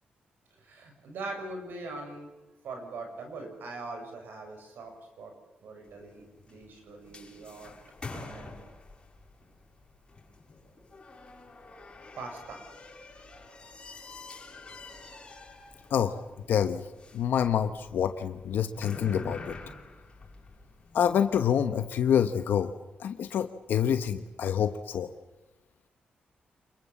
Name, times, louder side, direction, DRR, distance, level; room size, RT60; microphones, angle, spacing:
voice 1, 0.6-2.3 2.6-5.3 5.6-7.7 8.1-8.6 12.1-12.7, right 3 dB, 90° right, 4 dB, 6.6 m, -42 dB
sound 1, 5.8-21.3, left 3 dB, 30° left, 7.3 m, -47 dB
voice 2, 16.5-16.8 17.1-19.5 20.9-22.7 23.0-25.1, left 8 dB, 85° left, 8 dB, 1.1 m, -27 dB
27.0 x 22.5 x 7.3 m, 1.0 s
cardioid pair, 105°, 3 cm